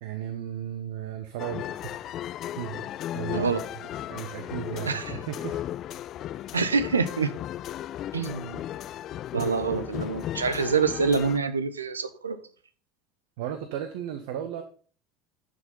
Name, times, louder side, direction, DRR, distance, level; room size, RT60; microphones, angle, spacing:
voice 1, 0.0-2.0 2.6-2.8 3.1-5.6 6.4-6.6 13.4-14.6, right 10 dB, 65° right, 8 dB, 1.1 m, -35 dB
sound 1, 1.4-11.4, left 12 dB, 50° left, 0.4 m, -35 dB
voice 2, 4.9-5.2 6.5-7.3 8.1-8.6 9.3-12.4, right 5 dB, 85° right, 13 dB, 0.8 m, -26 dB
11.0 x 6.7 x 5.3 m, 0.40 s
figure-of-eight pair, 70°, 0 cm